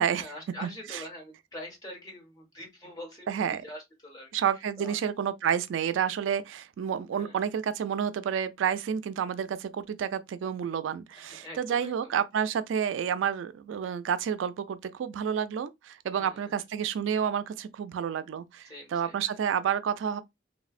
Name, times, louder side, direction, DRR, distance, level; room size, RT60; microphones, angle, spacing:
voice 1, 0.1-4.3 4.8-5.0 7.1-7.5 11.2-12.1 16.1-16.6 18.6-19.4, left 1 dB, 20° left, 1.2 m, -45 dB
voice 2, 0.6-1.0 3.3-3.6 4.3-20.2, right 8 dB, 85° right, 0.3 m, -30 dB
3.1 x 2.1 x 2.3 m
head